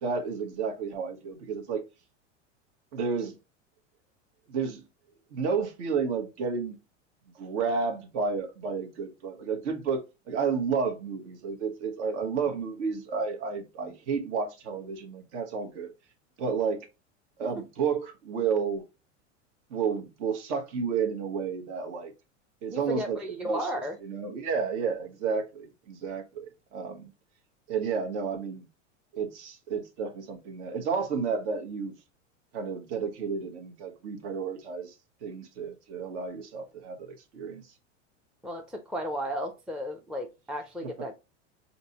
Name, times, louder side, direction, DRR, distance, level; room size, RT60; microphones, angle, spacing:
voice 1, 0.0-1.8 2.9-3.4 4.5-4.8 5.3-6.8 7.3-10.0 10.3-15.9 16.4-16.9 17.4-18.8 19.7-22.1 22.6-23.2 23.4-23.7 24.0-27.1 27.7-28.7 29.1-31.9 32.5-34.9 35.2-37.6 41.0-41.1, right 5 dB, 65° right, 1.3 m, -31 dB
voice 2, 22.7-24.0 38.4-41.1, equal, 5° right, 0.4 m, -34 dB
5.1 x 2.8 x 2.8 m
hypercardioid pair, 100°, 37 cm